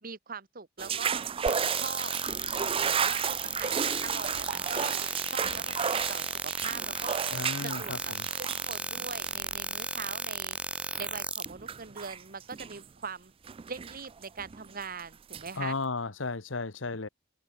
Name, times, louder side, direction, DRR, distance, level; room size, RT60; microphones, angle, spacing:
voice 1, 0.0-1.2 1.8-2.1 2.8-4.9 5.3-7.2 7.6-7.9 8.4-10.6 11.0-13.3 13.7-15.8, right 5 dB, 50° right, 1.8 m, -42 dB
sound 1, 0.8-9.6 10.9-11.0 11.3-12.9 13.5-15.0 15.3-15.6, right 7 dB, 30° right, 0.4 m, -33 dB
sound 2, 1.5-11.5, right 2 dB, 5° right, 0.8 m, -35 dB
voice 2, 7.3-8.3 15.6-17.1, left 3 dB, 80° left, 1.4 m, -34 dB
head